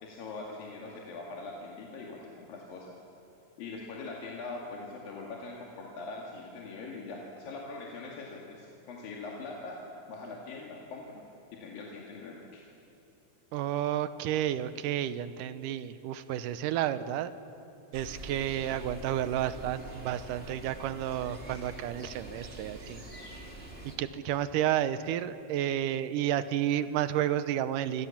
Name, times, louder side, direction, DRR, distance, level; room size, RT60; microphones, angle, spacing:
voice 1, 0.0-2.9 3.6-9.8 10.1-11.2 11.5-12.6 24.3-24.4, left 3 dB, 70° left, -2 dB, 3.9 m, -42 dB
voice 2, 13.5-17.3 17.9-23.0 24.0-28.1, right 11 dB, 75° right, 13 dB, 2.1 m, -31 dB
sound 1, 17.9-24.0, right 1 dB, 20° right, 1.8 m, -45 dB
28.0 x 25.0 x 7.3 m, 2.9 s
omnidirectional pair, 4.3 m